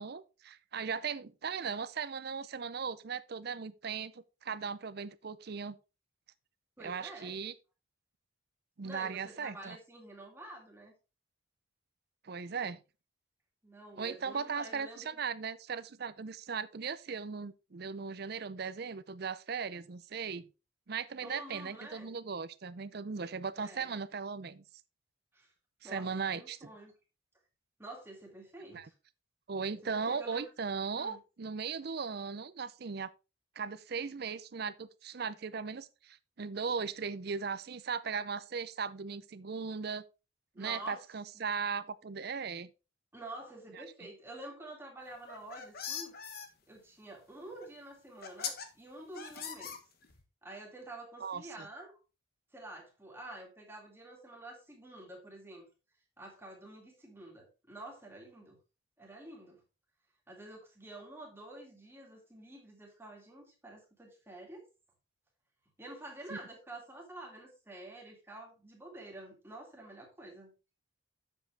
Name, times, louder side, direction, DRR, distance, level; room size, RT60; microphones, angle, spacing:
voice 1, 0.0-5.8 6.8-7.5 8.8-9.8 12.2-12.8 14.0-20.4 20.9-24.6 25.8-26.7 28.7-28.9 29.5-33.1 33.6-40.0 40.6-42.7 43.7-43.8 51.2-51.7 66.3-66.4, right 5 dB, 50° right, 0.5 m, -38 dB
voice 2, 6.8-7.4 8.8-10.9 13.6-15.1 21.2-22.1 23.6-24.0 25.3-25.5 25.8-26.9 27.8-28.9 29.7-30.5 30.9-31.2 40.5-41.0 43.1-46.2 46.7-49.8 50.4-52.0 52.5-55.7 56.2-58.6 59.0-59.6 60.3-64.7 65.8-70.5, right 1 dB, 10° right, 2.3 m, -48 dB
sound 1, 45.2-46.5 47.6-47.7 48.2-48.7 49.2-50.2, left 7 dB, 50° left, 1.1 m, -40 dB
7.8 x 7.2 x 3.3 m
head